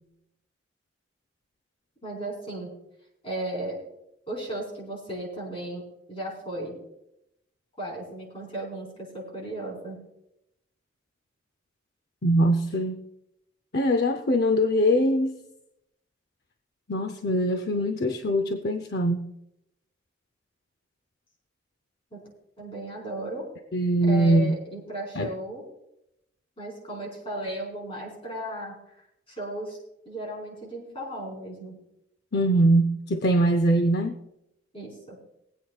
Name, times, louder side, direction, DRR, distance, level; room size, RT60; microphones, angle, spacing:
voice 1, 2.0-2.7 3.2-3.8 4.3-5.8 6.1-6.8 7.8-10.0 22.1-22.2 22.6-23.4 24.0-25.6 26.6-29.8 30.0-31.8 34.7-35.2, right 1 dB, 30° left, -2 dB, 4.6 m, -35 dB
voice 2, 12.2-13.0 13.7-15.3 16.9-19.2 23.7-24.5 25.2-25.3 32.3-34.2, right 1 dB, 55° left, 7 dB, 0.6 m, -22 dB
23.5 x 8.4 x 2.4 m, 0.82 s
head